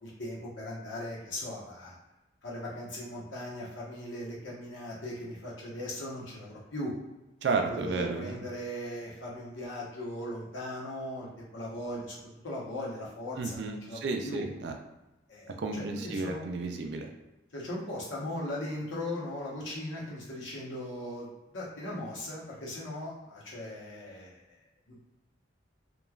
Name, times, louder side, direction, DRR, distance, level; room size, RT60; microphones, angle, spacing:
voice 1, 0.0-2.0 2.4-6.9 7.5-12.2 12.4-14.4 15.3-16.4 17.5-24.6 24.9-25.0, left 1 dB, 85° left, -5 dB, 0.9 m, -39 dB
voice 2, 7.4-8.3 13.4-14.7 15.6-17.1, right 3 dB, 60° right, 4 dB, 0.3 m, -32 dB
3.0 x 2.2 x 2.3 m, 1.0 s
head